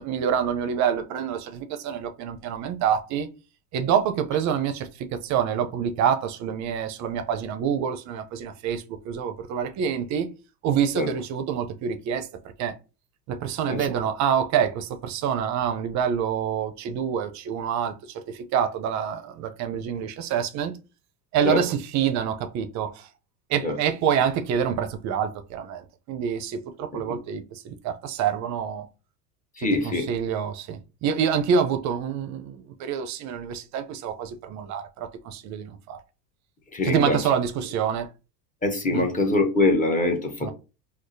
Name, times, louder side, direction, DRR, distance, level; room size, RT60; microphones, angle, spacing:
voice 1, 0.0-3.3 3.7-10.3 10.6-12.3 12.6-12.8 13.3-20.8 21.3-23.1 23.5-28.9 29.6-36.0 36.8-38.1 38.9-39.1 40.4-40.5, right 8 dB, 35° right, 0.6 m, -27 dB
voice 2, 29.6-30.1 36.7-37.2 38.6-40.5, left 2 dB, 15° left, 0.9 m, -23 dB
4.7 x 2.0 x 2.6 m
hypercardioid pair, 85°, 48 cm